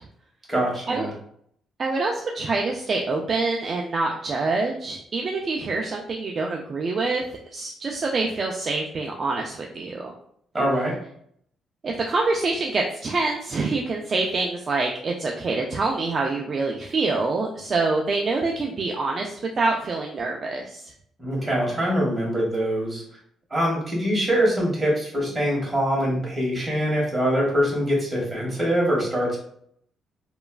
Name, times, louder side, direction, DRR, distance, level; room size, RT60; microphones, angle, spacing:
voice 1, 0.5-1.1 10.5-10.9 21.2-23.0 23.5-29.4, equal, 20° right, -4 dB, 1.4 m, -23 dB
voice 2, 1.8-7.2 7.5-10.1 11.8-20.9, right 3 dB, 45° right, 0 dB, 0.3 m, -26 dB
3.0 x 2.2 x 2.3 m, 0.67 s
cardioid pair, 90°, 0 cm